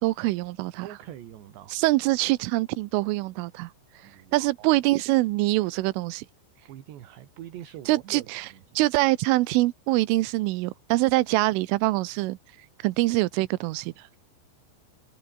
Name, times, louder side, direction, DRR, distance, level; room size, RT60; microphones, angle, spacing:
voice 1, 0.0-0.9 1.7-3.7 4.3-6.3 7.9-8.4 8.8-12.4 12.8-13.9, right 20 dB, 85° right, 3.4 m, -24 dB
voice 2, 0.8-1.8 4.0-4.8 6.7-8.8, right 12 dB, 65° right, 3.9 m, -44 dB
omnidirectional pair, 5.7 m